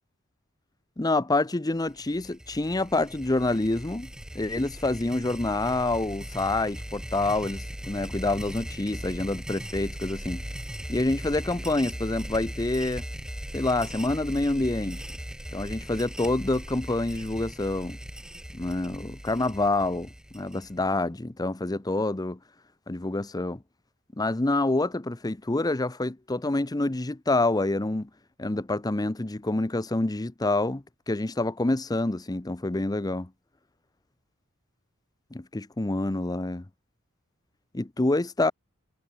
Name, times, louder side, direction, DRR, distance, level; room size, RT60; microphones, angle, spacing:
voice 1, 1.0-4.1 4.3-10.4 10.9-13.0 13.5-15.0 15.5-18.0 18.5-22.4 22.9-23.6 24.2-28.1 28.4-33.3 35.3-36.6 37.7-38.5, left 2 dB, 20° left, 0.7 m, -27 dB
sound 1, 1.9-20.9, equal, 5° right, 1.4 m, -39 dB
head